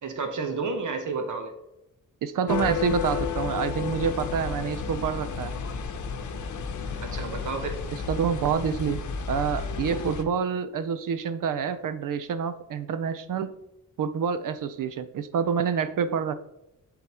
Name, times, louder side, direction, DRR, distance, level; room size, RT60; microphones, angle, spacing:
voice 1, 0.0-1.5 7.0-7.8, right 4 dB, 70° right, 5 dB, 1.0 m, -31 dB
voice 2, 2.2-5.6 8.1-9.0 9.3-13.5 14.0-16.4, right 7 dB, 85° right, 12 dB, 0.6 m, -27 dB
sound 1, 2.5-10.2, left 6 dB, 65° left, 0.8 m, -32 dB
11.5 x 3.9 x 2.9 m, 0.88 s
wide cardioid pair, 150°, 32 cm